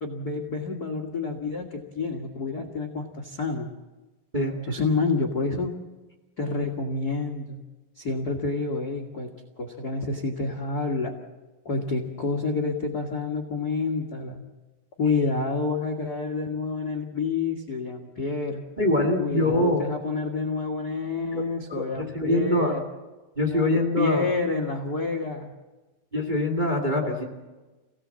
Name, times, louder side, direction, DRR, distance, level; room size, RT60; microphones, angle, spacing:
voice 1, 0.0-3.7 4.7-5.7 6.4-7.6 7.9-9.3 9.6-11.2 11.6-14.4 15.0-18.6 19.2-22.8 23.4-25.5, left 3 dB, 45° left, 2 dB, 1.3 m, -28 dB
voice 2, 18.8-19.8 21.3-22.7 23.4-24.3 26.1-27.3, left 1 dB, 15° right, 0 dB, 2.0 m, -24 dB
27.0 x 17.5 x 7.5 m, 1.2 s
omnidirectional pair, 4.2 m